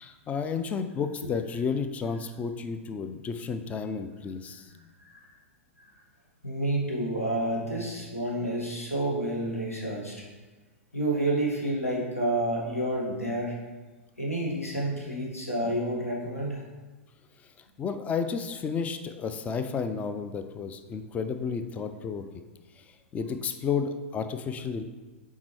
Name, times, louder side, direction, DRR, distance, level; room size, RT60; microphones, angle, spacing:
voice 1, 0.0-4.7 17.8-22.2 22.8-22.9 23.1-24.8, left 6 dB, 20° left, 9 dB, 0.4 m, -32 dB
voice 2, 6.4-10.2 10.9-13.6 14.2-16.7, right 1 dB, 90° left, -3 dB, 1.6 m, -29 dB
7.2 x 4.7 x 3.1 m, 1.2 s
figure-of-eight pair, 105°, 7 cm